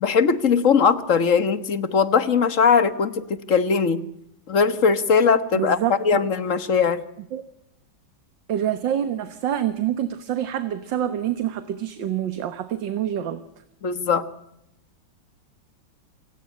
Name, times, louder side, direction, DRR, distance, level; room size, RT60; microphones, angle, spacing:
voice 1, 0.0-4.0 4.5-7.0 13.8-14.2, left 6 dB, 45° left, 14 dB, 1.5 m, -20 dB
voice 2, 5.6-6.2 7.3-7.4 8.5-13.4, right 10 dB, 65° right, 11 dB, 1.9 m, -26 dB
27.5 x 16.5 x 9.7 m, 0.81 s
omnidirectional pair, 2.2 m